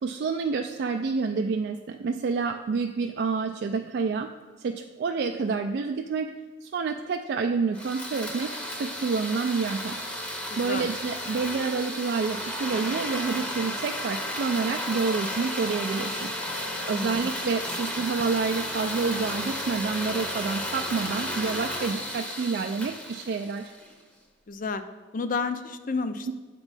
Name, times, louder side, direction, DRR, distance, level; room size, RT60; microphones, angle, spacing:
voice 1, 0.0-4.3 4.6-6.3 6.6-16.6 16.9-23.7 26.3-26.4, right 4 dB, 55° right, 4 dB, 0.3 m, -28 dB
sound 1, 7.7-23.9, equal, 5° left, 0.7 m, -33 dB
voice 2, 10.5-10.9 16.9-17.3 17.7-17.8 24.5-24.8 25.1-26.3, left 4 dB, 45° left, 9 dB, 0.4 m, -31 dB
8.0 x 3.0 x 5.4 m, 1.4 s
head